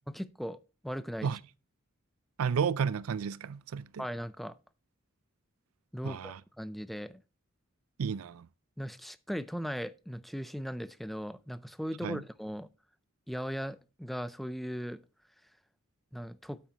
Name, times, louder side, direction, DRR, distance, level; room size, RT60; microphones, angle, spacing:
voice 1, 0.2-0.6 0.8-1.3 4.0-4.5 5.9-7.2 8.8-12.7 13.3-15.0 16.1-16.6, equal, ahead, 0.5 m, -38 dB
voice 2, 2.4-4.0 6.0-6.4 8.0-8.5 12.0-12.2, right 6 dB, 90° right, 0.4 m, -32 dB
9.2 x 8.5 x 2.9 m
head